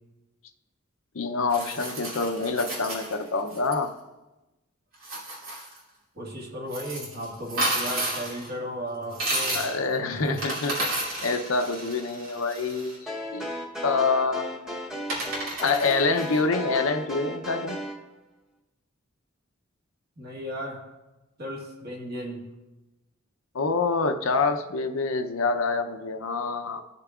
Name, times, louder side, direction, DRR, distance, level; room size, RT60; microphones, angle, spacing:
voice 1, 1.1-3.9 9.5-10.9 11.2-13.5 13.8-14.8 15.6-17.8 23.5-26.8, left 4 dB, 75° left, 7 dB, 0.7 m, -26 dB
sound 1, 1.5-3.7 4.9-5.8 6.7-8.5 9.1-9.8 10.2-13.0 14.4-14.5 15.1-16.4, right 1 dB, 80° right, 2.9 m, -32 dB
voice 2, 6.1-9.6 10.1-10.4 20.2-20.8 21.4-22.4, equal, 50° right, -1 dB, 1.7 m, -35 dB
sound 2, 13.1-18.0, left 1 dB, 5° right, 1.0 m, -35 dB
15.5 x 6.7 x 2.4 m, 1.1 s
head